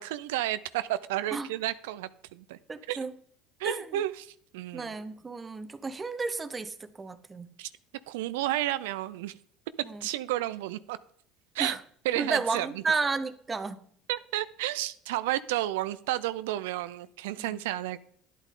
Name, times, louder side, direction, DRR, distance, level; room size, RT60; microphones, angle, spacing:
voice 1, 0.0-2.6 2.9-3.0 3.6-4.9 7.6-7.7 8.1-9.4 10.0-11.0 11.5-11.8 12.0-12.8 14.1-18.1, right 14 dB, 90° right, 14 dB, 0.4 m, -32 dB
voice 2, 2.7-3.1 3.6-4.0 4.7-7.5 9.8-10.1 11.6-11.8 12.1-13.8 17.4-17.6, right 4 dB, 20° right, 12 dB, 0.9 m, -32 dB
11.0 x 8.2 x 3.7 m, 0.63 s
supercardioid pair, 100°, 0 cm